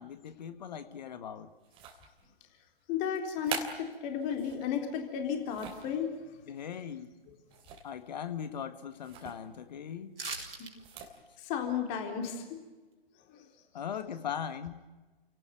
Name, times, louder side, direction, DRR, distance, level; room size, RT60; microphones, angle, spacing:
voice 1, 0.0-1.5 6.5-7.1 7.8-10.1 13.7-14.7, left 8 dB, 45° left, 10 dB, 1.7 m, -39 dB
sound 1, 1.6-2.3 3.1-4.7 5.2-5.9 7.5-8.0 8.3-8.4 9.0-9.4 10.7-11.2, right 6 dB, 15° right, 3.0 m, -43 dB
voice 2, 2.9-6.1 10.6-10.7 11.4-12.4 13.3-13.4, left 8 dB, 25° left, 4 dB, 3.9 m, -33 dB
sound 2, 10.1-10.7 11.1-11.2, right 4 dB, 65° right, 4.4 m, -39 dB
30.0 x 18.0 x 9.3 m, 1.2 s
figure-of-eight pair, 130°, 30 cm